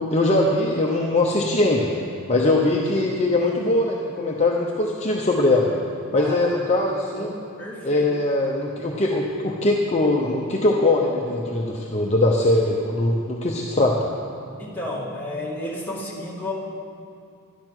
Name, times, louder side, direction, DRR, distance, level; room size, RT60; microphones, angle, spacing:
voice 1, 0.0-1.9 2.3-5.7 6.1-7.3 7.8-14.0, left 2 dB, 30° left, -1 dB, 0.8 m, -21 dB
voice 2, 7.1-8.1 14.6-16.5, left 1 dB, 10° left, -6 dB, 2.3 m, -32 dB
12.0 x 11.0 x 6.1 m, 2.4 s
head